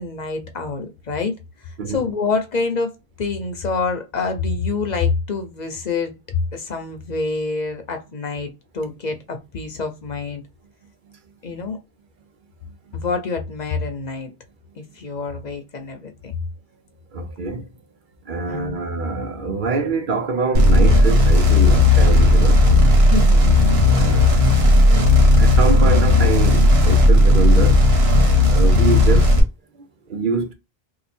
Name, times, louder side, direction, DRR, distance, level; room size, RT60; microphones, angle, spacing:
voice 1, 0.0-1.3 1.9-2.9 3.2-6.1 6.5-10.4 11.4-11.8 12.9-14.3 14.8-16.3 18.5-18.8 23.0-23.7 28.2-28.7, left 4 dB, 50° left, 0.8 m, -26 dB
voice 2, 17.1-17.6 18.3-22.6 23.9-24.4 25.4-27.9 28.5-29.3 30.1-30.5, right 3 dB, 55° right, 0.8 m, -24 dB
sound 1, 20.5-29.4, left 1 dB, 80° right, 1.3 m, -14 dB
3.0 x 2.2 x 4.2 m
omnidirectional pair, 1.0 m